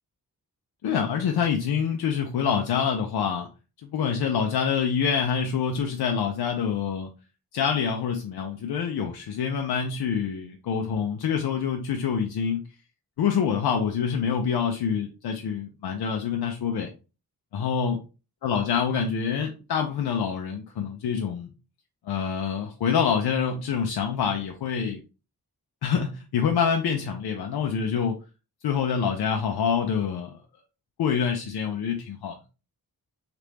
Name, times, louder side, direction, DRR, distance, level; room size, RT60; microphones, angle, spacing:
voice 1, 0.8-3.5 3.8-7.1 7.5-12.6 13.2-16.9 17.5-18.0 18.4-21.5 22.0-25.0 25.8-28.2 28.6-30.3 31.0-32.4, left 7 dB, 80° left, 3 dB, 0.5 m, -26 dB
3.4 x 2.5 x 2.9 m, 0.32 s
wide cardioid pair, 120°, 38 cm